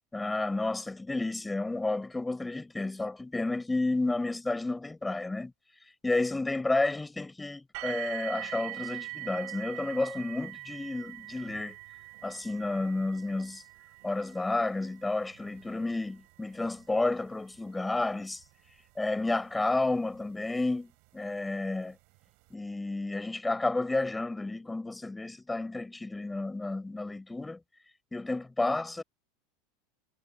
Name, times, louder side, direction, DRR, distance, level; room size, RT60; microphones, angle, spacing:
voice 1, 0.1-5.5 6.0-11.8 12.2-13.6 14.0-18.4 19.0-22.0 22.5-27.6 28.1-29.0, left 2 dB, 10° left, 5.4 m, -31 dB
sound 1, 7.7-20.6 21.5-21.6 22.1-22.2, right 32 dB, 60° right, 5.6 m, -44 dB
supercardioid pair, 130°, 0 cm